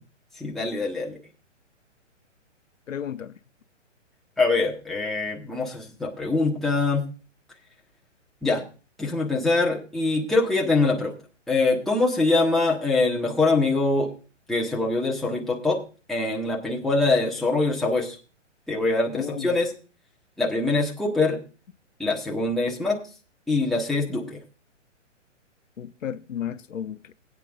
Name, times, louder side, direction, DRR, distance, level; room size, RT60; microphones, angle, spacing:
voice 1, 0.4-1.2 4.4-7.1 8.4-8.6 9.0-11.1 11.5-14.1 14.5-15.8 16.1-18.2 18.7-19.7 20.4-21.4 22.0-23.0 23.5-24.4, left 3 dB, ahead, 1.2 m, -23 dB
voice 2, 2.9-3.3 19.1-19.6 25.8-27.1, left 9 dB, 90° left, 0.8 m, -33 dB
18.0 x 9.0 x 2.5 m
hypercardioid pair, 145°, 37 cm